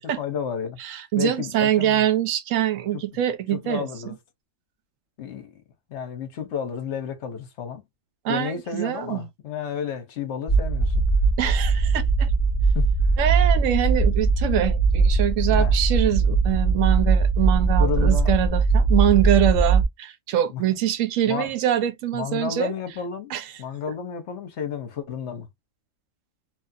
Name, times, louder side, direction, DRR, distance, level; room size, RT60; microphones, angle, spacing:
voice 1, 0.0-0.8 1.2-2.0 2.9-3.0 3.5-4.2 5.2-5.6 5.9-7.8 8.3-11.0 12.7-12.9 15.5-15.7 17.8-18.3 20.5-20.6 21.3-21.5 22.1-25.5, left 8 dB, 65° left, 1.0 m, -31 dB
voice 2, 0.8-3.9 8.2-9.3 11.4-12.3 13.2-22.7 23.3-23.5, right 11 dB, 80° right, 0.9 m, -24 dB
sound 1, 10.5-19.9, right 4 dB, 5° left, 0.6 m, -20 dB
3.0 x 2.3 x 2.5 m
omnidirectional pair, 1.3 m